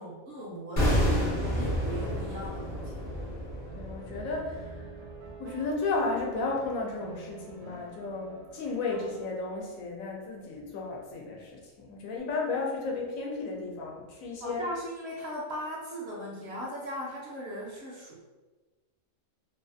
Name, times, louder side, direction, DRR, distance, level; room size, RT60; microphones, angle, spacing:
voice 1, 0.0-3.0 14.4-18.2, equal, 65° right, -4 dB, 0.7 m, -38 dB
sound 1, 0.8-5.8 6.0-6.2, equal, 40° left, 0.6 m, -30 dB
sound 2, 1.1-6.0 6.3-9.7, right 2 dB, 85° right, 1.0 m, -49 dB
voice 2, 2.0-2.5 3.7-4.9 5.4-14.6, left 3 dB, 80° left, -1 dB, 1.0 m, -34 dB
2.6 x 2.3 x 2.5 m, 1.3 s
omnidirectional pair, 1.4 m